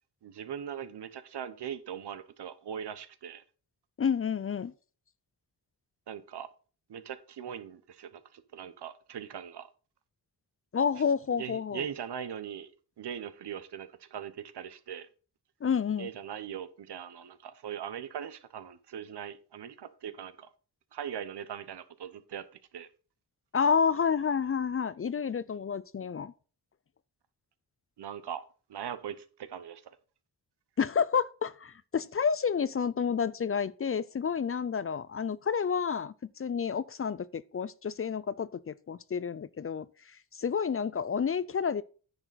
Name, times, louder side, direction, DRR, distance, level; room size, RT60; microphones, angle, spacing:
voice 1, 0.2-3.4 6.1-6.5 6.9-9.7 11.4-12.7 13.0-15.1 16.0-20.5 20.9-22.5 22.7-22.9 28.0-28.4 28.7-29.8, right 8 dB, 80° right, 1.0 m, -40 dB
voice 2, 4.0-4.7 10.7-11.8 15.6-16.1 23.5-26.3 30.8-39.9 40.3-41.8, left 6 dB, 35° left, 0.4 m, -29 dB
10.0 x 6.6 x 4.1 m
wide cardioid pair, 95°, 40 cm